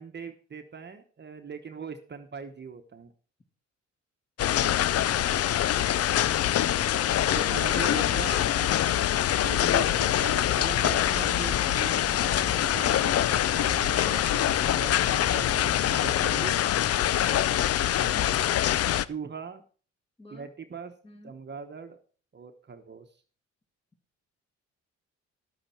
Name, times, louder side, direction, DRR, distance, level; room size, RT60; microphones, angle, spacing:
voice 1, 0.0-3.1 4.6-5.1 7.3-8.4 9.4-15.7 16.0-16.6 19.0-19.6 20.3-20.9 21.2-22.0 22.3-23.0, right 6 dB, 35° right, 6 dB, 1.1 m, -40 dB
sound 1, 4.4-19.0, left 11 dB, 55° left, 0.5 m, -24 dB
voice 2, 7.9-9.0 20.2-20.5 21.0-21.3, equal, 20° left, 5 dB, 2.2 m, -48 dB
sound 2, 9.4-16.1, right 3 dB, 10° right, 0.5 m, -44 dB
11.0 x 8.8 x 4.4 m, 0.38 s
cardioid pair, 90°, 30 cm